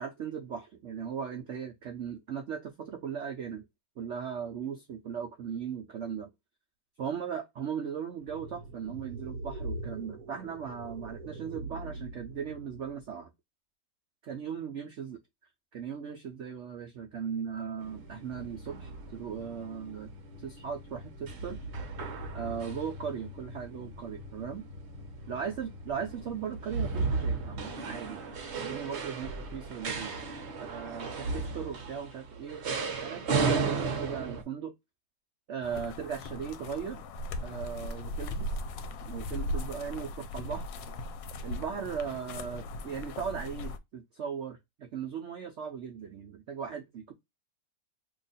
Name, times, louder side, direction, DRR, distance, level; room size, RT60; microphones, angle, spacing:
voice 1, 0.0-3.6 4.0-6.3 7.0-13.3 14.2-15.2 15.7-20.1 20.4-21.6 22.3-24.6 25.3-30.1 30.6-34.7 35.5-37.0 37.4-38.6 39.1-40.7 41.4-47.1, right 7 dB, 90° right, 0.6 m, -38 dB
sound 1, 8.2-13.0, right 2 dB, 70° right, 1.1 m, -42 dB
sound 2, 17.8-34.4, right 4 dB, 50° right, 0.8 m, -35 dB
sound 3, 35.6-43.8, left 1 dB, 85° left, 1.3 m, -38 dB
2.9 x 2.3 x 3.9 m
omnidirectional pair, 1.9 m